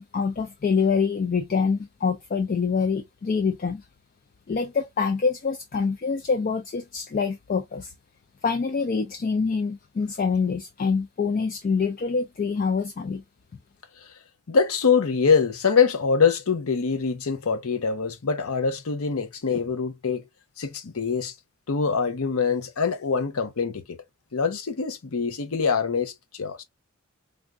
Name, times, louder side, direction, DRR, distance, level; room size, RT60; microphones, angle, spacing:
voice 1, 0.0-3.9 4.5-7.9 8.4-13.2, left 5 dB, 40° left, 0.3 m, -25 dB
voice 2, 14.5-20.2 20.6-21.3 21.7-24.0 24.3-26.6, left 5 dB, 90° left, 0.7 m, -24 dB
3.4 x 2.4 x 2.4 m
head